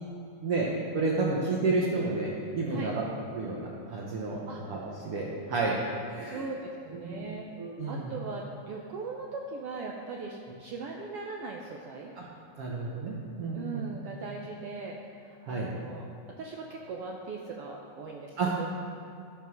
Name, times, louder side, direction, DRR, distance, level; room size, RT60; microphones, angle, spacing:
voice 1, 0.9-3.0 3.3-5.7 6.1-6.5 7.0-8.1 12.2-12.3 12.6-13.9 15.4-15.7 18.4-18.5, right 3 dB, 60° right, -4 dB, 1.6 m, -31 dB
voice 2, 4.5-4.8 6.2-7.5 7.9-12.1 13.5-15.0 15.2-16.1 16.4-18.7, right 4 dB, 90° right, -1 dB, 1.3 m, -39 dB
12.5 x 5.4 x 6.3 m, 2.6 s
omnidirectional pair, 3.6 m